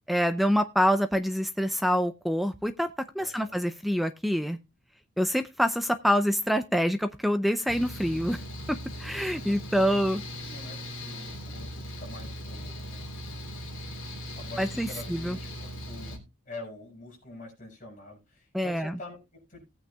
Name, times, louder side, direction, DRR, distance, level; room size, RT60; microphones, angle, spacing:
voice 1, 0.1-2.9 3.2-4.6 5.2-8.4 8.7-10.2 14.6-15.4 18.5-18.9, equal, ahead, 9 dB, 0.4 m, -26 dB
voice 2, 3.1-3.5 9.5-13.4 14.4-19.6, left 2 dB, 35° left, -1 dB, 6.0 m, -46 dB
Mechanical fan, 7.7-16.2, equal, 65° left, 3.2 m, -39 dB
18.0 x 8.8 x 2.3 m, 0.24 s
head